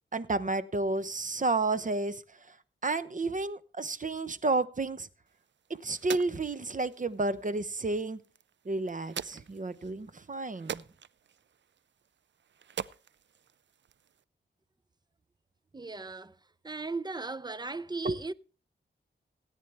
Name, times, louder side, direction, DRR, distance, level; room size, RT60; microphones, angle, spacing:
voice 1, 0.1-2.2 2.8-5.1 5.7-8.2 8.6-10.8 18.0-18.2, right 3 dB, 40° right, 0.9 m, -31 dB
sound 1, 5.3-14.2, right 8 dB, 65° right, 0.5 m, -45 dB
voice 2, 15.7-16.4 16.6-18.3, right 3 dB, 20° right, 0.6 m, -37 dB
17.0 x 9.4 x 3.4 m
cardioid pair, 55°, 20 cm